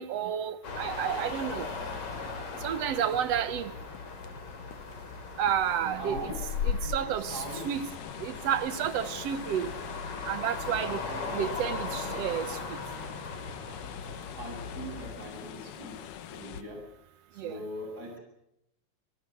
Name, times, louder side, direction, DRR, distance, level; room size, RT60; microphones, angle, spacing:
voice 1, 0.0-1.7 2.6-3.7 5.4-6.1 6.6-7.9 8.2-9.7 10.3-11.0 11.3-12.5 17.4-17.6, right 9 dB, 65° right, 1.8 m, -30 dB
sound 1, 0.6-15.1, left 4 dB, 45° left, 3.9 m, -39 dB
sound 2, 1.3-16.6, left 7 dB, 65° left, 2.4 m, -43 dB
voice 2, 6.0-7.6 11.0-11.3 14.4-16.0 16.3-16.8 17.3-18.2, right 1 dB, 25° right, 8.1 m, -41 dB
sound 3, 7.3-16.6, left 11 dB, 80° left, 2.7 m, -45 dB
25.5 x 17.5 x 8.3 m
omnidirectional pair, 3.8 m